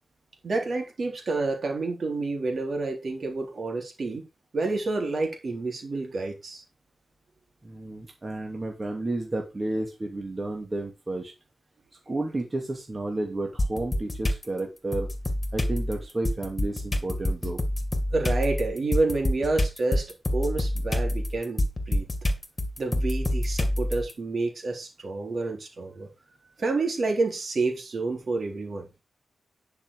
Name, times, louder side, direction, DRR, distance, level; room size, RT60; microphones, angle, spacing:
voice 1, 0.4-4.2 4.5-6.6 18.1-22.1 22.8-26.1 26.6-28.9, right 3 dB, 55° right, 3.9 m, -29 dB
voice 2, 7.6-11.3 12.1-15.1 15.5-17.6, right 2 dB, 30° right, 2.6 m, -32 dB
sound 1, 13.6-14.4 14.9-24.1, left 1 dB, 25° left, 2.4 m, -27 dB
10.5 x 5.8 x 4.9 m
cardioid pair, 90°, 0 cm